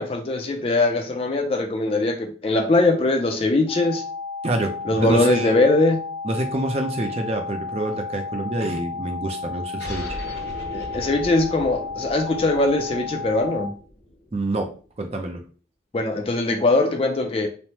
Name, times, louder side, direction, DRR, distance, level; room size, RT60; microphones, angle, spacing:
voice 1, 0.0-4.0 4.9-6.0 10.7-13.7 15.9-17.5, left 2 dB, 30° left, 4 dB, 0.4 m, -21 dB
sound 1, 3.7-13.7, left 4 dB, 5° left, 1.1 m, -33 dB
voice 2, 4.4-5.5 6.2-10.2 14.3-14.7 15.0-15.4, right 2 dB, 35° right, 4 dB, 0.4 m, -27 dB
sound 2, 9.8-14.9, left 1 dB, 85° left, 0.8 m, -38 dB
3.1 x 2.0 x 2.8 m, 0.38 s
head